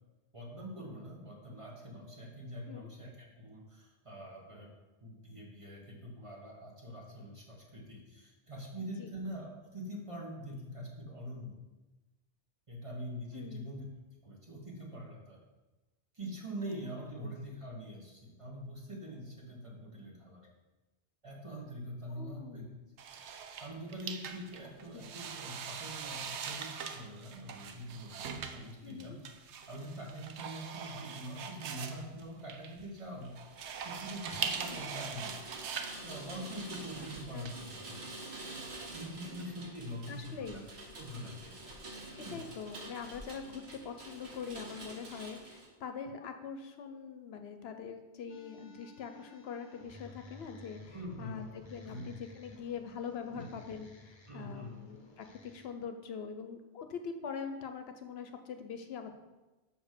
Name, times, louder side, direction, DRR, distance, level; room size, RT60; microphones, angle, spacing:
voice 1, 0.3-4.7 5.0-11.6 12.7-13.8 14.1-15.4 16.1-20.5 21.2-22.6 23.6-29.2 29.7-33.3 33.8-35.4 36.0-38.0 38.9-40.6 41.0-41.6 42.2-42.4 50.9-51.4 51.8-52.1 53.3-53.4 54.3-54.7, equal, 30° right, -2 dB, 1.5 m, -44 dB
voice 2, 8.8-9.1 13.3-13.7 17.2-17.4 22.1-22.7 24.9-25.1 28.8-29.2 34.3-34.8 37.0-37.1 37.3-37.5 39.3-39.4 40.1-40.6 42.3-59.1, left 6 dB, 70° left, 7 dB, 0.8 m, -43 dB
sound 1, 23.0-37.5, right 7 dB, 90° right, 0.9 m, -42 dB
Rain, 33.3-45.7, right 2 dB, 70° right, 1.5 m, -47 dB
sound 2, 48.3-55.7, left 2 dB, 30° left, 0.8 m, -55 dB
5.6 x 5.1 x 6.6 m, 1.1 s
omnidirectional pair, 1.1 m